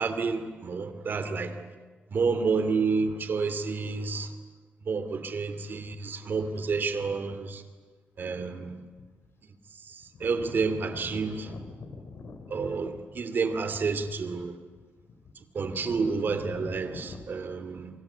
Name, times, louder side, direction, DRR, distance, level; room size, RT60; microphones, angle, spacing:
voice 1, 0.0-1.6 2.1-4.3 4.9-7.6 8.2-8.7 9.9-11.5 12.5-14.5 15.5-17.9, right 4 dB, 50° right, 10 dB, 2.7 m, -29 dB
sound 1, 6.7-7.1 8.2-8.3 8.9-9.3 9.6-9.7 9.9-17.3, left 4 dB, 70° left, 3.1 m, -45 dB
28.0 x 23.5 x 8.6 m, 1.3 s
wide cardioid pair, 140°, 4 cm